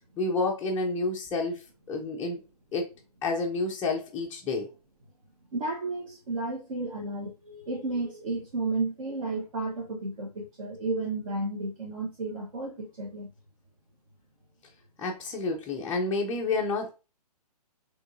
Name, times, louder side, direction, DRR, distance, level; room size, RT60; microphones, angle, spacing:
voice 1, 0.2-2.4 2.7-2.9 3.2-4.7 15.0-16.9, left 3 dB, 10° left, 0.5 m, -29 dB
voice 2, 5.5-13.3, right 2 dB, 55° right, 1.1 m, -32 dB
5.1 x 3.1 x 2.5 m
figure-of-eight pair, 135°, 21 cm